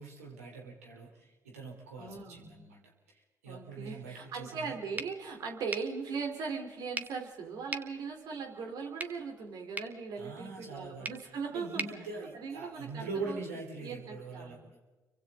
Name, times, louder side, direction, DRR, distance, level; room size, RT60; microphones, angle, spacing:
voice 1, 0.0-2.8 3.1-4.8 10.2-11.2 11.5-14.8, right 3 dB, 85° right, 0 dB, 3.6 m, -43 dB
voice 2, 2.0-2.5 3.5-11.8 12.4-13.4 13.8-14.6, right 5 dB, 60° right, 3 dB, 3.6 m, -39 dB
sound 1, 5.0-13.0, right 2 dB, 20° right, 1.7 m, -44 dB
30.0 x 24.5 x 3.8 m, 1.2 s
hypercardioid pair, 45°, 7 cm